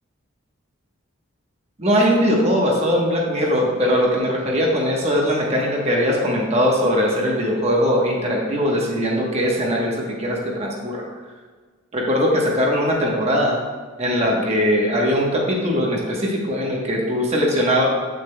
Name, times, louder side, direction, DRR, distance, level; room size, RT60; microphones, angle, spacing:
voice 1, 1.8-11.1 11.9-13.6 14.0-17.8, equal, 30° right, -2 dB, 1.1 m, -20 dB
8.3 x 6.4 x 2.3 m, 1.5 s
head